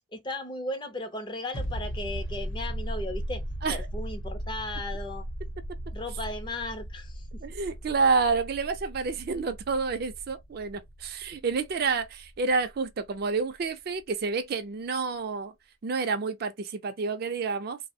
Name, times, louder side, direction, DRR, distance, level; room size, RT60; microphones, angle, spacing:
voice 1, 0.1-3.4 3.7-5.3 5.9-7.4, left 2 dB, 20° left, 0.4 m, -36 dB
sound 1, 1.5-12.9 13.2-13.3, equal, 65° left, 0.8 m, -37 dB
voice 2, 7.4-15.5 15.8-17.8, right 4 dB, 50° right, 0.4 m, -29 dB
2.9 x 2.0 x 2.6 m
head